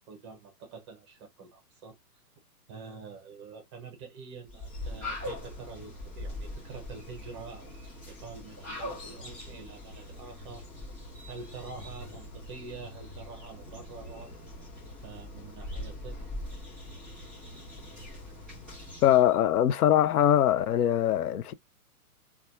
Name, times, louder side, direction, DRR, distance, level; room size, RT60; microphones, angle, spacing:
voice 1, 0.1-2.0 2.7-7.8 8.1-10.6 11.3-14.3 15.0-16.2, right 4 dB, 20° right, 0.6 m, -46 dB
sound 1, 4.5-19.4, left 1 dB, ahead, 2.3 m, -42 dB
voice 2, 19.0-21.5, left 11 dB, 70° left, 0.5 m, -22 dB
4.0 x 2.3 x 2.3 m
hypercardioid pair, 145°, 47 cm